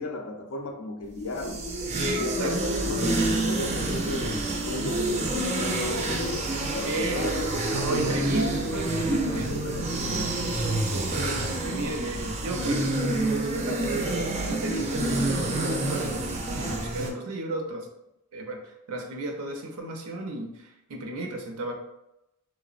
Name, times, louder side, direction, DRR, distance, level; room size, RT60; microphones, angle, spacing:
voice 1, 0.0-1.7 2.2-7.4 7.7-10.4, left 2 dB, 65° left, 3 dB, 0.4 m, -35 dB
sound 1, 1.2-17.1, right 2 dB, 30° right, 0.3 m, -28 dB
voice 2, 2.0-2.6 6.8-9.5 10.9-17.9 18.3-21.7, right 2 dB, 85° right, 2 dB, 0.5 m, -34 dB
sound 2, 7.7-8.3 9.2-9.8 10.2-10.6 11.4-12.6, left 1 dB, 15° left, 0.5 m, -45 dB
3.2 x 2.0 x 2.4 m, 0.87 s
head